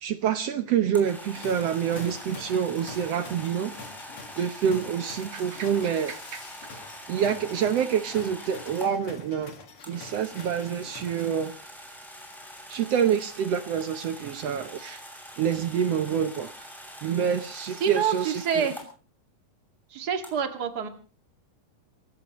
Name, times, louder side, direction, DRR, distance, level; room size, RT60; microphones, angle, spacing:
voice 1, 0.0-3.7 4.4-6.4 7.1-9.5 9.9-11.5 12.7-15.0 15.4-16.5 17.0-18.7, right 8 dB, 65° right, 10 dB, 1.7 m, -27 dB
sound 1, 0.9-8.9 9.8-18.9 20.2-20.3, equal, ahead, 6.5 m, -44 dB
sound 2, 1.3-11.8, left 5 dB, 45° left, 2.4 m, -46 dB
voice 2, 17.8-18.8 19.9-20.9, right 7 dB, 35° right, 6 dB, 2.3 m, -27 dB
29.0 x 16.5 x 3.1 m, 0.39 s
omnidirectional pair, 3.8 m